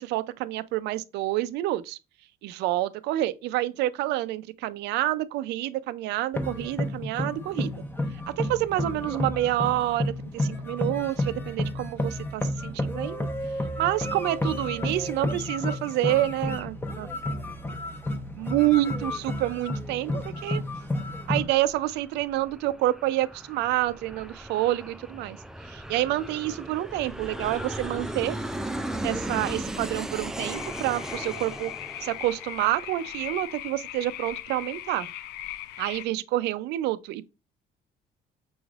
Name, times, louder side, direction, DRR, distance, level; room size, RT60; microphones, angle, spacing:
voice 1, 0.0-2.0 2.4-7.7 8.4-13.3 13.8-17.1 18.4-20.6 21.3-25.4 25.7-28.4 29.0-31.7 32.0-35.1 35.8-37.3, right 15 dB, 80° right, 0.4 m, -28 dB
sound 1, 6.3-21.4, left 1 dB, 10° left, 0.8 m, -31 dB
Aircraft, 20.0-33.2, right 1 dB, 5° right, 0.4 m, -37 dB
sound 2, 30.4-36.1, left 13 dB, 85° left, 0.5 m, -39 dB
6.1 x 3.2 x 2.4 m
cardioid pair, 110°, 17 cm